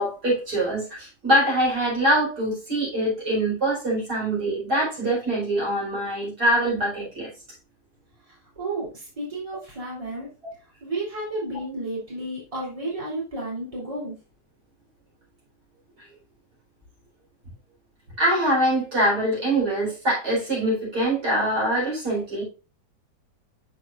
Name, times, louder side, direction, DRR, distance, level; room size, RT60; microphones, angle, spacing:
voice 1, 0.0-7.3 18.2-22.4, right 1 dB, 65° right, 5.1 m, -23 dB
voice 2, 8.3-10.3 10.8-14.2, right 2 dB, 20° right, 3.4 m, -32 dB
8.9 x 6.2 x 2.5 m
omnidirectional pair, 1.8 m